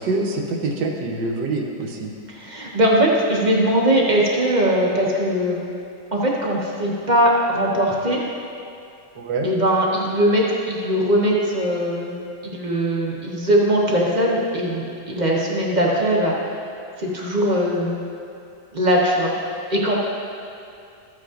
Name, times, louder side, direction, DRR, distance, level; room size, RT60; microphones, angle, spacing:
voice 1, 0.0-2.1 9.2-9.5, right 3 dB, 85° right, 1 dB, 1.6 m, -25 dB
voice 2, 2.3-5.6 6.1-8.2 9.4-16.4 17.0-18.0 18.7-19.3 19.7-20.0, equal, 30° right, -3 dB, 1.1 m, -20 dB
14.0 x 8.4 x 2.5 m, 2.6 s
omnidirectional pair, 1.9 m